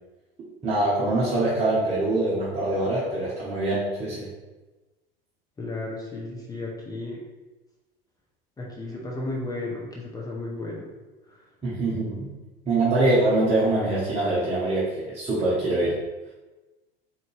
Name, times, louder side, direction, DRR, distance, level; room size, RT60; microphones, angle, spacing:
voice 1, 0.6-4.3 11.6-12.3 12.7-16.0, right 2 dB, 20° right, -9 dB, 1.2 m, -24 dB
voice 2, 5.6-7.2 8.6-10.9 11.3-11.4, left 2 dB, 10° left, -4 dB, 0.7 m, -34 dB
4.0 x 2.8 x 3.4 m, 1.1 s
figure-of-eight pair, 80°, 31 cm